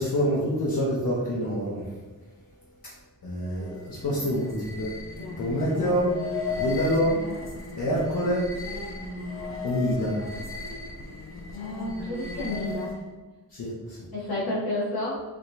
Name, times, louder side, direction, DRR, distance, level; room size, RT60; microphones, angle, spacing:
voice 1, 0.0-1.9 3.2-4.9 5.4-6.1 6.5-7.2 7.8-8.5 9.6-10.2 13.5-14.0, equal, 60° left, -7 dB, 1.1 m, -26 dB
sound 1, 3.4-13.1, left 3 dB, 35° left, 0.7 m, -36 dB
voice 2, 6.8-7.1 11.5-13.0 14.1-15.2, left 1 dB, 85° left, -6 dB, 1.4 m, -31 dB
5.0 x 2.9 x 2.6 m, 1.2 s
cardioid pair, 75°, 36 cm